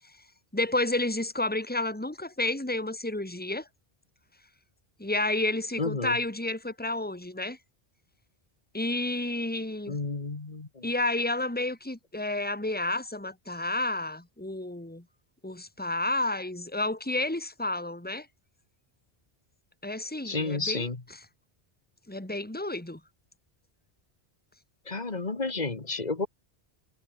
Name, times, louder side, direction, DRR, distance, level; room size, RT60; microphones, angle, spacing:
voice 1, 0.5-3.7 5.0-7.6 8.7-10.0 10.8-15.0 15.4-18.3 19.8-20.9 22.1-23.0, left 2 dB, 10° left, 2.4 m, -30 dB
voice 2, 5.8-6.2 9.9-10.9 20.2-21.0 24.9-26.3, left 3 dB, 45° left, 1.9 m, -31 dB
omnidirectional pair, 1.0 m